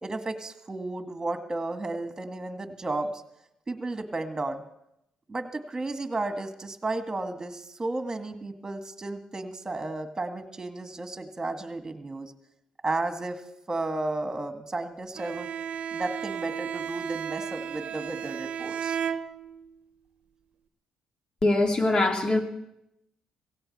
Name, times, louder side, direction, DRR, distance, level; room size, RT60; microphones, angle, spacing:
voice 1, 0.0-3.2 3.7-4.6 5.3-12.3 12.8-13.4 13.7-15.5 15.9-19.0, right 2 dB, 25° right, 7 dB, 1.8 m, -33 dB
Bowed string instrument, 15.2-19.8, right 8 dB, 65° right, 0.8 m, -34 dB
voice 2, 21.4-22.4, left 2 dB, 35° left, 4 dB, 2.2 m, -22 dB
17.0 x 16.0 x 4.3 m, 0.83 s
supercardioid pair, 75°, 2 cm